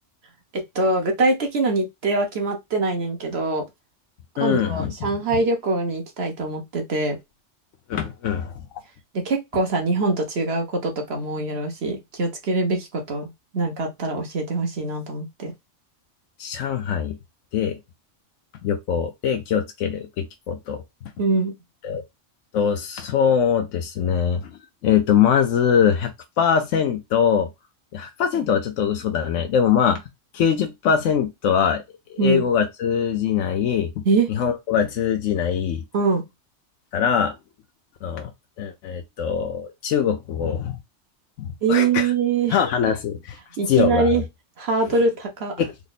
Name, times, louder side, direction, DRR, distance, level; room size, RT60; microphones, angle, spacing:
voice 1, 0.7-3.7 4.4-7.2 9.1-15.5 21.2-21.5 32.2-32.5 34.0-34.3 35.9-36.2 41.6-42.6 43.6-44.2 44.6-45.5, right 3 dB, 60° right, 1.2 m, -23 dB
voice 2, 4.4-5.4 7.9-8.5 16.4-17.2 17.5-17.8 18.6-20.8 21.8-22.0 22.5-24.5 24.8-27.5 27.9-30.0 30.3-31.8 32.1-34.0 34.3-35.8 36.9-37.3 38.0-38.3 38.6-40.8 41.4-42.1 42.5-43.4 43.7-44.1 45.6-45.7, left 8 dB, 85° left, 0.9 m, -22 dB
3.6 x 2.0 x 4.0 m
omnidirectional pair, 1.3 m